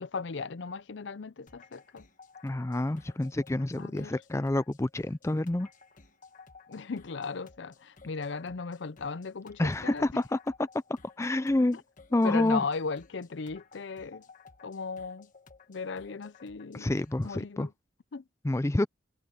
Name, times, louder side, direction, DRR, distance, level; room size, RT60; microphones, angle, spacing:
voice 1, 0.0-2.0 3.8-4.1 6.7-10.2 12.2-14.2 14.6-15.3 15.7-16.9 17.2-17.7 18.1-18.2, left 4 dB, 65° left, 0.6 m, -36 dB
sound 1, 1.5-17.3, left 4 dB, 40° left, 1.3 m, -56 dB
voice 2, 2.4-5.7 9.6-10.7 11.2-11.8 12.1-12.7 16.7-17.7 18.4-18.9, left 1 dB, 15° left, 0.4 m, -28 dB
head